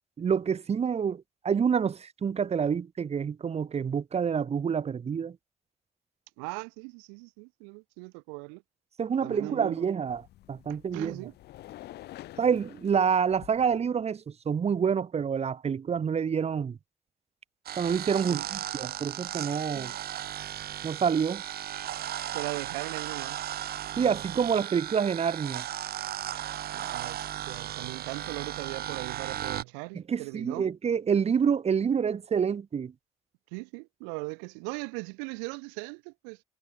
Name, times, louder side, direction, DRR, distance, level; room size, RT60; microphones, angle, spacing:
voice 1, 0.2-5.4 9.0-10.2 10.5-11.2 12.4-16.8 17.8-19.9 20.8-21.4 24.0-25.6 30.1-32.9, right 7 dB, 35° right, 0.8 m, -27 dB
voice 2, 6.4-8.6 9.2-9.9 10.7-11.3 18.3-18.5 19.7-20.0 22.3-23.4 26.7-30.7 33.5-36.4, right 40 dB or more, 75° right, 1.2 m, -39 dB
sound 1, 10.1-13.8, left 15 dB, 65° left, 2.6 m, -48 dB
sound 2, 17.7-29.6, right 12 dB, 60° right, 1.4 m, -36 dB
figure-of-eight pair, 40°, 18 cm